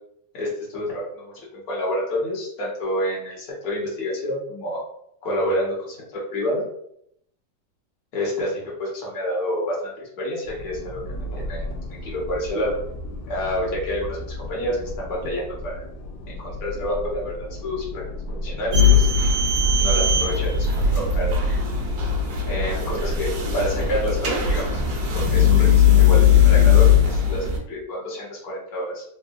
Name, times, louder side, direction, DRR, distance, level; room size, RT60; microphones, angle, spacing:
voice 1, 0.3-4.8 5.2-6.6 8.1-9.9 10.2-11.0 11.3-11.7 12.0-12.7 13.3-15.8 16.3-18.0 18.4-19.1 19.8-21.6 22.5-24.8 25.1-29.0, equal, 60° left, -5 dB, 1.5 m, -28 dB
sound 1, 10.4-27.1, left 1 dB, 75° left, 1.2 m, -34 dB
sound 2, 18.7-27.6, left 7 dB, 65° right, 1.1 m, -18 dB
3.6 x 2.1 x 2.5 m, 0.72 s
omnidirectional pair, 2.0 m